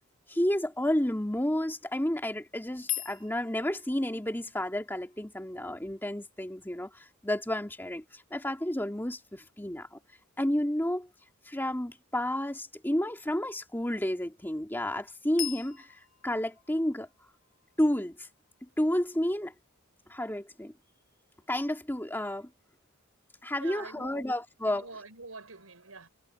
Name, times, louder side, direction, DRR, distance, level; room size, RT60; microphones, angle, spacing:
voice 1, 0.3-6.9 7.2-10.0 10.4-11.1 11.5-17.1 17.8-18.3 18.6-19.5 20.1-20.7 21.5-22.5 23.4-24.9, left 1 dB, 10° left, 2.2 m, -31 dB
sound 1, 2.9-6.9 15.4-19.2, left 16 dB, 60° left, 7.1 m, -42 dB
voice 2, 23.6-24.3 24.6-26.1, right 3 dB, 90° right, 5.4 m, -45 dB
head